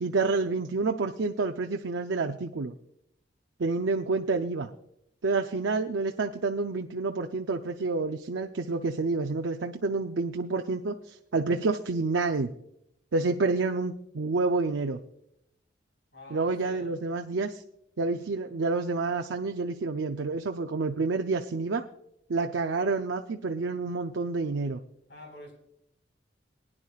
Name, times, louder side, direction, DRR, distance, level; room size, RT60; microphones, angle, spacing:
voice 1, 0.0-2.7 3.6-4.7 5.2-12.5 13.1-15.0 16.3-17.6 18.0-21.9 22.3-24.8, right 3 dB, 85° right, 5 dB, 0.6 m, -28 dB
voice 2, 16.1-16.9 25.1-25.5, left 1 dB, 65° left, 2 dB, 4.6 m, -47 dB
21.0 x 10.0 x 2.4 m, 0.77 s
head